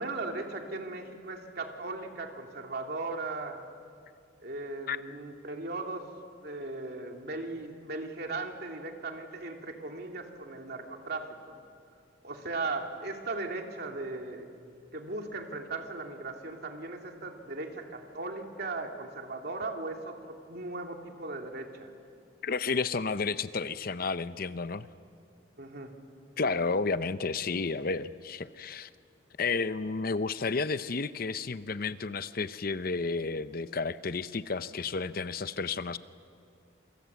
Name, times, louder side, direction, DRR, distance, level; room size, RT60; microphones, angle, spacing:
voice 1, 0.0-3.6 4.4-6.1 6.4-11.6 12.2-21.9 25.6-25.9, right 3 dB, 55° right, 3 dB, 2.8 m, -38 dB
voice 2, 22.4-24.9 26.4-28.9 29.4-36.0, left 4 dB, 50° left, 13 dB, 0.7 m, -31 dB
28.0 x 25.0 x 8.3 m, 2.3 s
head